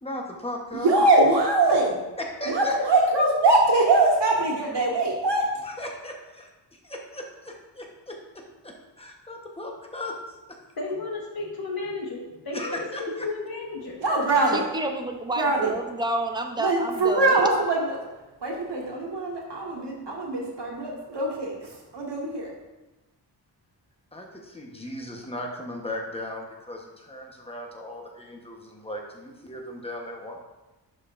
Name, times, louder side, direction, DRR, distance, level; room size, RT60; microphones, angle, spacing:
voice 1, 0.0-0.9 2.4-2.7 5.6-6.5 6.8-10.4 12.5-13.3 24.1-30.4, left 1 dB, 15° left, 0 dB, 1.1 m, -37 dB
voice 2, 0.7-2.0 2.5-5.4 14.0-14.6 15.4-15.7 16.6-18.0 18.4-22.5, right 2 dB, 80° right, -1 dB, 1.8 m, -22 dB
voice 3, 10.8-14.0, left 3 dB, 60° left, -1 dB, 1.6 m, -33 dB
voice 4, 14.5-17.3, right 2 dB, 10° right, 4 dB, 0.6 m, -30 dB
11.5 x 5.5 x 2.6 m, 1.1 s
wide cardioid pair, 145°, 41 cm